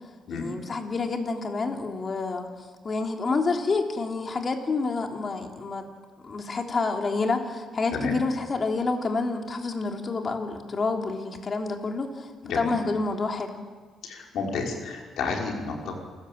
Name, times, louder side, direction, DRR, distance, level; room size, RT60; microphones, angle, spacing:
voice 1, 0.3-2.5 2.8-5.9 6.2-13.6, left 3 dB, 40° left, 3 dB, 3.4 m, -28 dB
voice 2, 14.0-16.0, left 4 dB, 75° left, 1 dB, 5.4 m, -31 dB
29.0 x 15.0 x 8.8 m, 1.5 s
cardioid pair, 90°, 0 cm